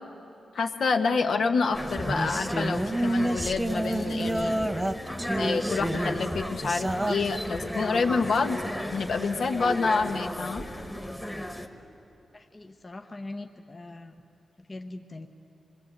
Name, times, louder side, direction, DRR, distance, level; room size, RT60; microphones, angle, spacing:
voice 1, 0.5-4.5 5.4-8.6 8.9-10.7, left 4 dB, 65° left, 5 dB, 1.3 m, -27 dB
sound 1, 1.7-11.7, left 1 dB, 5° left, 1.4 m, -35 dB
sound 2, 2.0-7.1, right 1 dB, 10° right, 0.6 m, -29 dB
voice 2, 12.3-14.1 14.7-15.3, left 2 dB, 25° left, 5 dB, 0.9 m, -41 dB
26.5 x 22.0 x 8.2 m, 2.8 s
wide cardioid pair, 140°, 0 cm